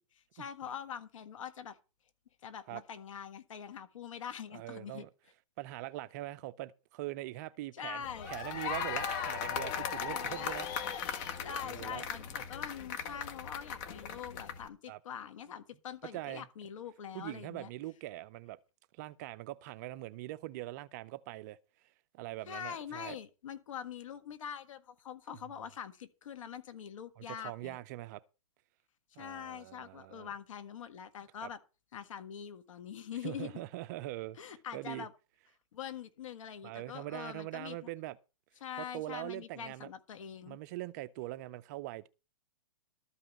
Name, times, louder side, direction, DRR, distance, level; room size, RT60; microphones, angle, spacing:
voice 1, 0.0-1.8 2.4-5.1 7.7-8.3 10.1-10.5 11.4-17.7 22.5-27.8 29.2-31.6 31.9-33.6 34.4-35.1 35.7-37.8 38.6-40.6, left 8 dB, 65° left, 1.7 m, -44 dB
voice 2, 4.5-5.1 5.6-10.7 11.6-12.0 14.9-15.0 16.1-16.5 17.1-18.6 18.9-21.6 22.1-23.2 27.2-28.2 29.2-30.3 31.4-31.5 33.2-35.1 36.6-38.2 38.8-39.9 40.5-42.1, right 16 dB, 30° right, 0.5 m, -42 dB
sound 1, 8.0-14.7, left 7 dB, 35° left, 1.5 m, -38 dB
13.0 x 5.5 x 7.3 m
hypercardioid pair, 150°, 18 cm